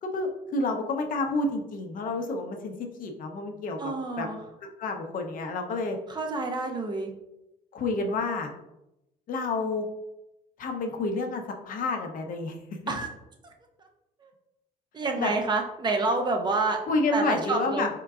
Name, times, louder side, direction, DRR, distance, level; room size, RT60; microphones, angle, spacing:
voice 1, 0.0-3.8 4.2-4.3 4.8-6.0 7.7-8.5 9.3-9.9 10.6-12.6 15.2-15.3 16.9-17.9, left 3 dB, 55° left, 3 dB, 0.7 m, -29 dB
voice 2, 3.8-4.4 6.1-7.1 12.9-13.1 14.2-14.3 14.9-16.8 17.1-17.9, right 3 dB, 25° right, 4 dB, 0.6 m, -28 dB
4.4 x 3.7 x 2.4 m, 0.93 s
cardioid pair, 110°, 17 cm